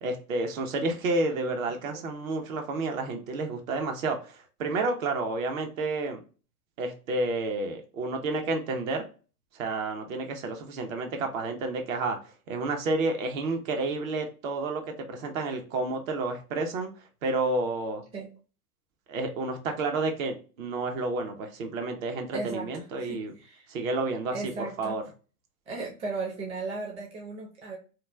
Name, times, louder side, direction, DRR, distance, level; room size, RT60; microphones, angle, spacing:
voice 1, 0.0-6.2 6.8-9.0 9.5-12.2 12.5-16.9 17.2-18.0 19.1-23.3 23.7-25.0, right 3 dB, 60° right, 4 dB, 0.9 m, -30 dB
voice 2, 22.3-23.7 24.3-25.0 25.7-27.8, right 3 dB, 15° right, -1 dB, 0.5 m, -36 dB
3.0 x 2.2 x 2.2 m, 0.36 s
hypercardioid pair, 100°, 45 cm